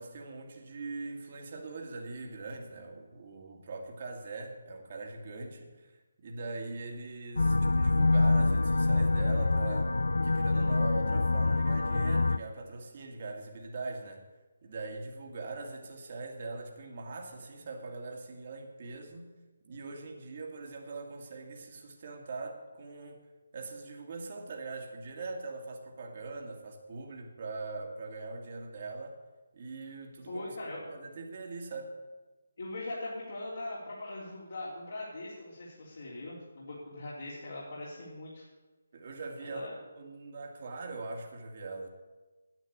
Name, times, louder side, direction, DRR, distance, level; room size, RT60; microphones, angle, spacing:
voice 1, 0.0-14.2 14.6-19.3 19.6-23.2 23.5-29.2 29.5-30.6 30.9-31.9 38.9-41.9, right 3 dB, 45° right, 2 dB, 2.0 m, -42 dB
sound 1, 7.4-12.4, left 2 dB, 80° left, 0.4 m, -26 dB
voice 2, 30.3-30.8 32.6-38.5 39.4-39.7, left 2 dB, 65° left, -7 dB, 3.5 m, -41 dB
10.5 x 8.3 x 8.6 m, 1.2 s
figure-of-eight pair, 150°, 0 cm